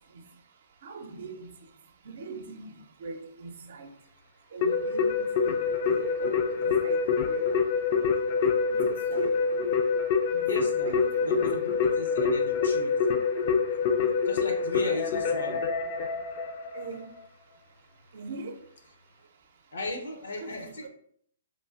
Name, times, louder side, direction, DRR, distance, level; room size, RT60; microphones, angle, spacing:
voice 1, 0.8-1.5 2.0-2.7 3.0-3.9 4.5-7.0 7.3-7.4 8.7-9.3 10.3-11.5 14.7-14.9 16.7-17.1 18.1-18.6 20.4-20.9, right 3 dB, 60° right, 0.5 m, -41 dB
Keyboard (musical), 4.6-17.0, left 5 dB, 45° left, 0.4 m, -26 dB
voice 2, 10.4-12.9 14.3-15.7 19.7-20.9, left 2 dB, 80° left, 0.7 m, -37 dB
3.2 x 2.4 x 2.5 m
hypercardioid pair, 140°, 0 cm